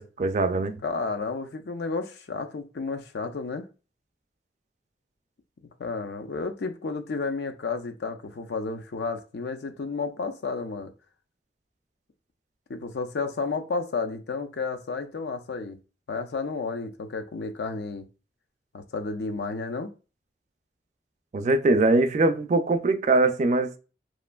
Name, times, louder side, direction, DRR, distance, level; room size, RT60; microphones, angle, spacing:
voice 1, 0.0-0.8 21.3-23.7, right 2 dB, 40° right, 0.3 m, -22 dB
voice 2, 0.8-3.7 5.8-10.9 12.7-15.8 16.1-18.1 18.7-19.9, left 4 dB, 70° left, 0.4 m, -32 dB
3.1 x 2.5 x 2.2 m
head